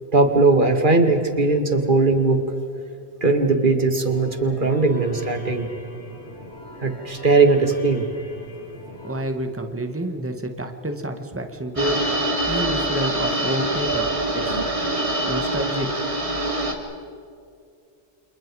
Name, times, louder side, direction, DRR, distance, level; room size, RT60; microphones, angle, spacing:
voice 1, 0.1-2.4 3.2-5.7 6.8-8.0 13.9-14.6, right 3 dB, 50° right, 5 dB, 2.4 m, -19 dB
sound 1, 4.0-9.2, left 1 dB, 75° left, 4.1 m, -42 dB
voice 2, 9.0-14.1 14.3-14.6 15.3-16.0, right 1 dB, 10° right, 5 dB, 1.8 m, -29 dB
sound 2, 11.8-16.7, right 1 dB, 30° right, 3.0 m, -24 dB
29.5 x 28.0 x 4.9 m, 2.4 s
omnidirectional pair, 1.1 m